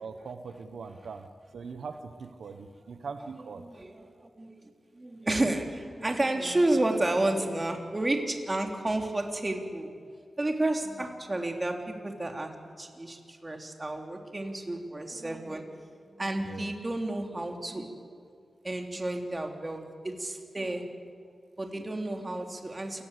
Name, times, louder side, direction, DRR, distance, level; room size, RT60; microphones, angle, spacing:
voice 1, 0.0-3.8 16.4-16.7, right 5 dB, 85° right, 8 dB, 1.2 m, -41 dB
voice 2, 3.6-9.9 10.4-17.9 18.6-20.8 21.6-23.0, right 1 dB, 25° right, 3 dB, 3.4 m, -31 dB
28.5 x 19.5 x 8.3 m, 2.2 s
wide cardioid pair, 85°, 0 cm